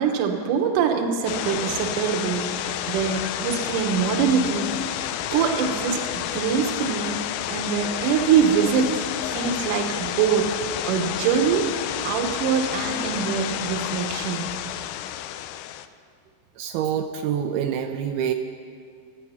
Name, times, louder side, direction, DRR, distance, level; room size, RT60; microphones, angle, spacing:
voice 1, 0.0-5.0 5.3-7.2 7.5-9.0 9.3-10.6 10.8-11.7 12.0-14.5, right 7 dB, 65° right, 5 dB, 2.5 m, -24 dB
sound 1, 1.3-15.9, left 12 dB, 90° left, 2.6 m, -30 dB
voice 2, 16.6-18.3, right 9 dB, 80° right, 5 dB, 2.5 m, -26 dB
26.0 x 8.8 x 5.8 m, 2.2 s
omnidirectional pair, 4.4 m